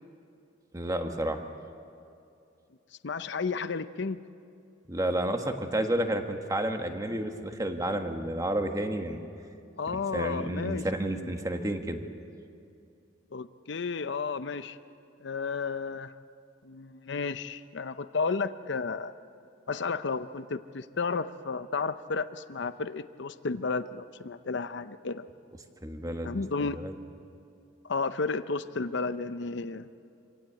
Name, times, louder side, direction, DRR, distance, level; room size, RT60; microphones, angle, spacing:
voice 1, 0.7-1.4 4.9-9.2 9.9-12.0 25.8-26.4 26.7-26.9, right 1 dB, 20° right, 5 dB, 1.4 m, -31 dB
voice 2, 3.0-4.2 9.8-10.9 11.1-11.3 13.3-14.8 15.2-16.1 16.6-19.1 19.7-25.2 26.2-26.8 27.8-29.9, left 4 dB, 65° left, 12 dB, 0.6 m, -32 dB
26.0 x 17.0 x 8.6 m, 2.6 s
head